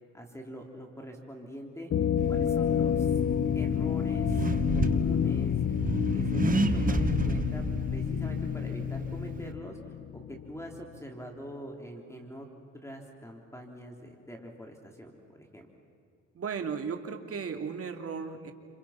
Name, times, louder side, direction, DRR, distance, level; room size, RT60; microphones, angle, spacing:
voice 1, 0.1-3.2 3.5-4.5 4.7-5.6 6.1-12.5 12.7-15.7, equal, 10° left, 1 dB, 3.5 m, -44 dB
sound 1, 1.9-10.6, left 9 dB, 45° left, 0.6 m, -29 dB
Accelerating revving vroom, 2.2-9.5, right 3 dB, 30° right, 1.6 m, -32 dB
voice 2, 16.3-18.5, right 6 dB, 50° right, 5 dB, 2.7 m, -35 dB
29.5 x 28.0 x 5.9 m, 2.4 s
cardioid pair, 90°, 30 cm